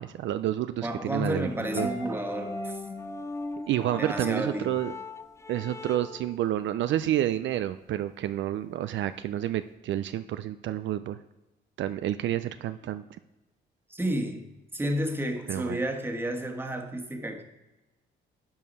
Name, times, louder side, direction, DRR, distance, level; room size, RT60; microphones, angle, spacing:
voice 1, 0.0-1.5 1.7-1.9 3.7-4.9 5.5-11.2 11.8-13.0 15.5-15.8, right 12 dB, 70° right, 11 dB, 0.4 m, -29 dB
voice 2, 0.8-2.8 3.9-4.8 13.9-17.4, right 1 dB, 10° right, 3 dB, 1.3 m, -31 dB
sound 1, 1.3-6.4, left 3 dB, 15° left, 0.3 m, -39 dB
Piano, 1.8-4.9 5.1-5.6, equal, 60° left, 2.7 m, -40 dB
11.0 x 4.7 x 5.4 m, 1.1 s
cardioid pair, 90°, 20 cm